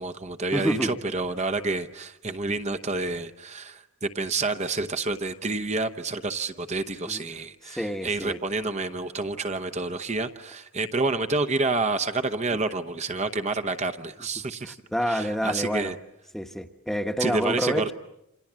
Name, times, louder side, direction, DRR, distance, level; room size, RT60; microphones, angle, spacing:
voice 1, 0.0-14.8 15.1-15.9 17.2-17.9, right 3 dB, 30° right, 8 dB, 0.9 m, -29 dB
voice 2, 0.5-1.0 7.1-7.2 7.6-8.4 14.6-15.9 16.3-17.9, equal, ahead, 7 dB, 1.1 m, -28 dB
28.5 x 26.5 x 7.5 m, 0.86 s
head